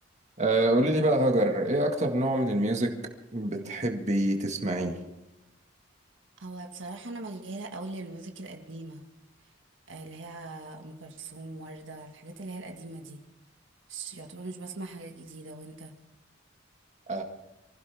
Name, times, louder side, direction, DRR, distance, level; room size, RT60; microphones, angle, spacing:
voice 1, 0.4-2.9 3.3-5.0 17.1-17.2, right 1 dB, 35° right, 2 dB, 1.8 m, -25 dB
voice 2, 6.4-9.0 9.9-13.2 13.9-15.9, right 2 dB, 70° right, 3 dB, 1.8 m, -41 dB
25.0 x 15.5 x 3.6 m, 0.97 s
head